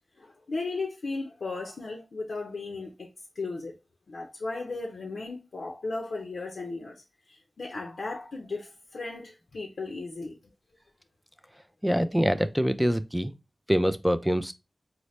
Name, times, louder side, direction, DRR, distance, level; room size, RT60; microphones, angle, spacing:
voice 1, 0.2-3.1 3.4-3.8 4.1-10.4, left 3 dB, 80° left, 0.6 m, -36 dB
voice 2, 11.8-13.3 13.7-14.5, equal, ahead, 0.4 m, -25 dB
4.2 x 2.0 x 3.1 m
cardioid pair, 50°, 0 cm